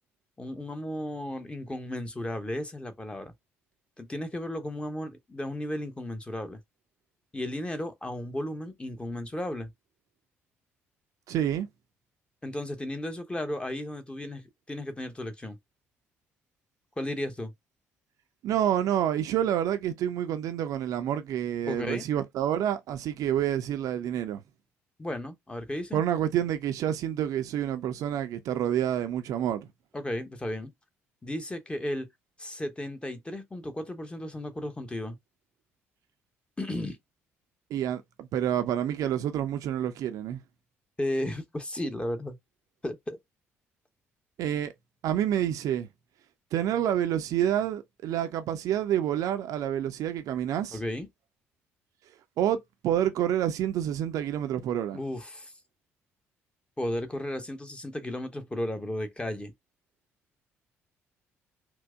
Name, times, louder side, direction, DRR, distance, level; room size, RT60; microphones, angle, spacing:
voice 1, 0.4-3.3 4.0-6.6 7.3-9.7 12.4-15.6 17.0-17.5 21.7-22.1 25.0-26.0 29.9-30.7 31.2-32.1 32.4-35.2 36.6-37.0 41.0-42.4 42.8-43.2 50.7-51.1 54.9-55.5 56.8-59.5, left 1 dB, 15° left, 0.8 m, -34 dB
voice 2, 11.3-11.7 18.4-24.4 25.9-29.7 37.7-40.4 44.4-44.7 45.0-45.9 46.5-50.8 52.4-55.0, right 10 dB, 55° right, 0.4 m, -28 dB
4.4 x 2.0 x 2.3 m
figure-of-eight pair, 45°, 7 cm